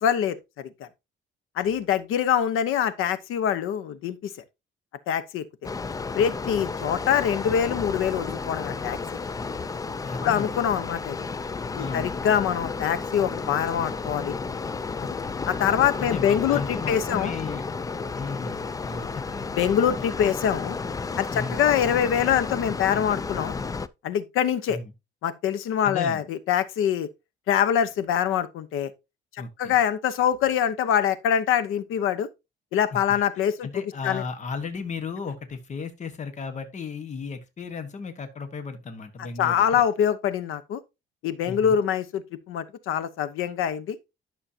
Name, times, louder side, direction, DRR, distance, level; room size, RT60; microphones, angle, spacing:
voice 1, 0.0-0.9 1.6-4.3 5.1-5.4 6.2-9.0 10.2-11.2 11.7-14.3 15.5-17.3 19.6-20.8 21.2-23.5 24.0-24.8 25.2-27.1 27.5-28.9 29.6-32.3 32.7-34.2 39.4-40.8 41.2-44.0, left 9 dB, 85° left, 1.0 m, -24 dB
sound 1, 5.6-23.9, left 4 dB, 15° left, 0.4 m, -32 dB
voice 2, 10.0-10.6 11.8-12.1 16.0-17.7 18.1-19.5 21.3-21.6 24.7-24.9 25.8-26.2 29.4-29.8 32.9-33.0 33.6-39.8 41.5-41.8, left 5 dB, 35° left, 1.3 m, -35 dB
11.5 x 6.4 x 2.8 m
cardioid pair, 130°, 21 cm